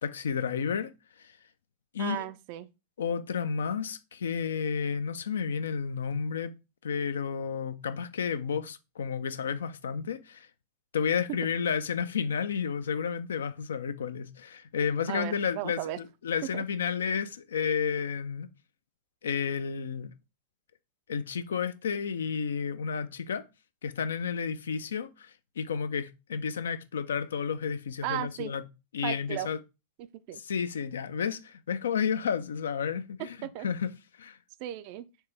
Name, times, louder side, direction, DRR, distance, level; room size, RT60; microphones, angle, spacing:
voice 1, 0.0-1.4 1.9-2.3 3.0-6.5 6.8-10.5 10.9-18.5 19.2-20.1 21.1-23.4 23.8-28.6 28.9-29.6 30.3-33.9 34.2-34.4, left 6 dB, 65° left, 0.3 m, -31 dB
voice 2, 2.0-2.7 15.1-16.0 16.5-16.6 28.0-28.5 29.0-29.5 30.0-30.4 33.4-33.7 34.6-35.0, right 13 dB, 45° right, 0.4 m, -35 dB
4.4 x 3.3 x 3.3 m
figure-of-eight pair, 90°, 0 cm